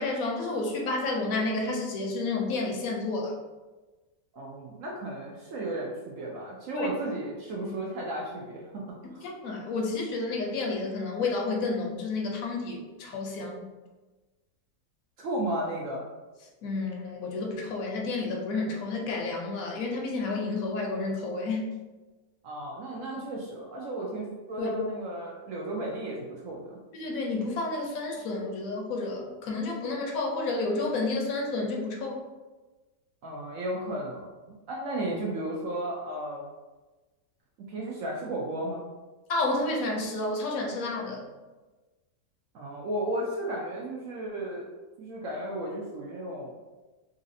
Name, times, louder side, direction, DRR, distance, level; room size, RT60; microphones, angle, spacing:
voice 1, 0.0-3.3 6.7-6.9 7.6-7.7 9.2-13.7 16.6-21.7 24.6-24.7 26.9-32.2 39.3-41.3, left 3 dB, 65° left, 0 dB, 0.9 m, -30 dB
voice 2, 4.3-8.8 9.1-9.2 15.2-16.0 22.4-26.8 33.2-36.5 37.7-38.8 42.5-44.7 45.0-46.5, right 1 dB, 70° right, -2 dB, 0.7 m, -34 dB
4.0 x 2.6 x 2.6 m, 1.2 s
omnidirectional pair, 1.9 m